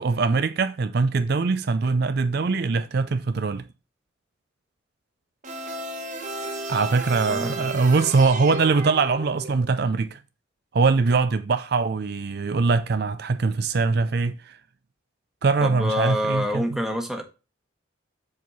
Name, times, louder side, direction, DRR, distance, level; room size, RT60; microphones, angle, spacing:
voice 1, 0.0-3.7 6.7-10.2 10.7-14.6 15.4-16.6, right 4 dB, 55° right, 0.5 m, -22 dB
sound 1, 5.4-9.8, right 2 dB, 40° right, 1.4 m, -34 dB
voice 2, 7.3-7.7 15.6-17.2, equal, ahead, 1.1 m, -27 dB
7.5 x 4.5 x 3.9 m
head